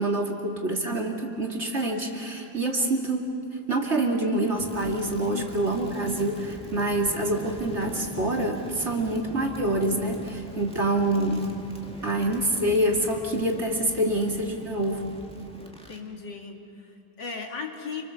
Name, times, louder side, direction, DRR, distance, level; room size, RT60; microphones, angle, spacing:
voice 1, 0.0-3.3 3.7-11.5 12.0-15.1, right 1 dB, 35° right, 1 dB, 2.6 m, -26 dB
Crackle, 4.5-16.1, equal, 5° left, 2.0 m, -43 dB
voice 2, 5.3-5.8 11.9-12.2 15.9-18.0, left 5 dB, 70° left, 1 dB, 3.0 m, -38 dB
28.5 x 25.5 x 6.9 m, 2.7 s
omnidirectional pair, 2.0 m